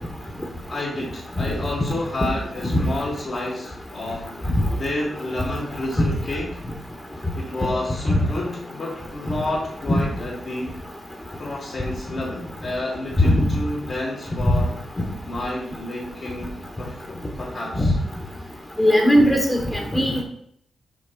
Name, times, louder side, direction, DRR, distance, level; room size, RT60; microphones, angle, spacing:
voice 1, 0.7-6.6 7.1-10.8 11.4-14.7 15.3-18.0, left 2 dB, 45° left, -6 dB, 2.1 m, -30 dB
voice 2, 18.8-20.2, left 1 dB, 20° left, 2 dB, 1.5 m, -18 dB
6.1 x 4.2 x 6.0 m, 0.67 s
cardioid pair, 105°, 0 cm